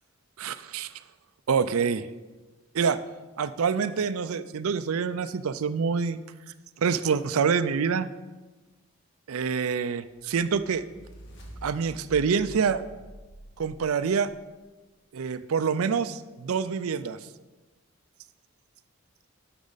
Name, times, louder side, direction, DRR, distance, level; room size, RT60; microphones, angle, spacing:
voice 1, 0.4-0.9 1.5-2.1 2.7-3.0 3.4-6.2 6.8-8.1 9.3-10.8 11.6-12.8 13.6-14.3 15.1-17.2, right 6 dB, 80° right, 13 dB, 0.4 m, -26 dB
sound 1, 10.1-14.4, equal, 55° left, 1.6 m, -47 dB
11.5 x 6.1 x 4.0 m, 1.2 s
head